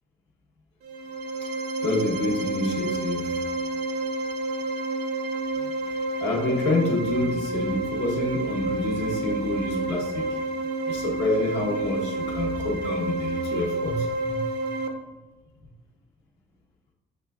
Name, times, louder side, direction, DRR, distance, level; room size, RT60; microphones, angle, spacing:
sound 1, 0.8-14.9, right 2 dB, 85° right, 0.6 m, -29 dB
voice 1, 1.8-3.4 6.2-10.3 10.9-14.4, left 2 dB, 85° left, -2 dB, 1.0 m, -27 dB
5.9 x 3.3 x 2.3 m, 1.2 s
cardioid pair, 110°, 17 cm